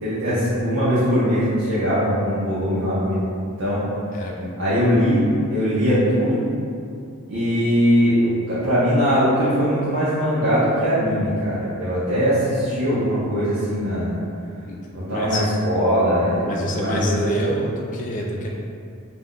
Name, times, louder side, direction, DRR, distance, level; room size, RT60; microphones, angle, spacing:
voice 1, 0.0-3.2 3.6-3.8 4.6-5.2 5.5-6.4 7.3-14.2 14.9-17.2, equal, 60° right, -12 dB, 0.6 m, -21 dB
voice 2, 4.1-4.9 14.7-15.4 15.7-15.9 16.5-18.5, equal, 35° left, -2 dB, 0.3 m, -27 dB
2.5 x 2.1 x 3.6 m, 2.4 s
head